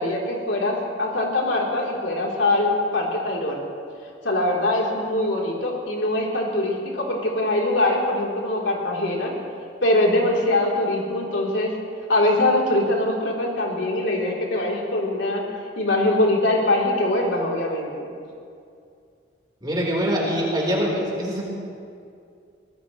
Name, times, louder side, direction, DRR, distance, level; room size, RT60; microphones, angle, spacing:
voice 1, 0.0-3.6 4.2-9.3 9.8-11.7 12.1-15.4 15.8-18.1, left 1 dB, 85° left, -3 dB, 3.4 m, -22 dB
voice 2, 19.6-21.5, equal, 25° right, -4 dB, 3.9 m, -24 dB
23.5 x 19.0 x 3.1 m, 2.4 s
head